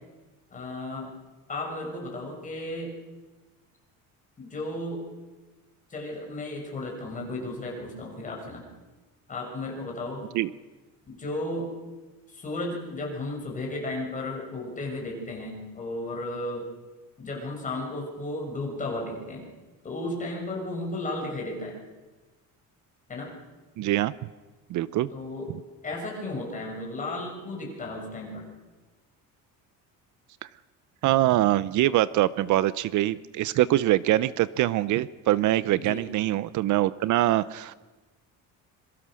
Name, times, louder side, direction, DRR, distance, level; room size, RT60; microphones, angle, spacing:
voice 1, 0.5-1.1 1.5-2.9 4.4-5.1 5.9-8.6 9.3-10.2 11.1-11.7 12.3-16.7 17.2-19.5 19.8-21.8 23.1-23.3 25.1-25.5 25.8-28.5 35.8-36.1, left 2 dB, 20° left, -1 dB, 6.2 m, -34 dB
voice 2, 23.8-24.1 24.7-25.1 31.0-37.7, right 15 dB, 60° right, 18 dB, 0.7 m, -23 dB
26.5 x 23.0 x 6.4 m, 1.2 s
cardioid pair, 170°, 34 cm